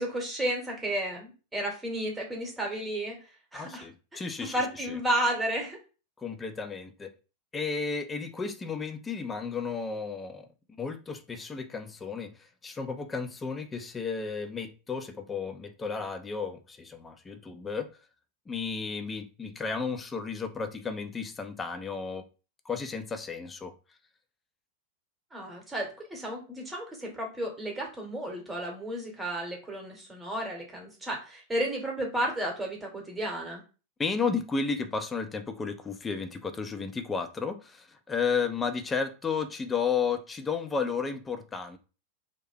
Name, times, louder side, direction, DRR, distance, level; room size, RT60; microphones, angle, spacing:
voice 1, 0.0-3.2 3.5-3.9 4.1-5.8 25.3-33.6, right 1 dB, 10° right, 1.0 m, -32 dB
voice 2, 3.5-5.0 6.2-7.1 7.5-10.5 10.8-12.3 12.6-17.9 18.5-22.2 22.7-23.7 34.0-41.8, left 5 dB, 15° left, 0.4 m, -33 dB
2.6 x 2.1 x 3.3 m
figure-of-eight pair, 90°, 0 cm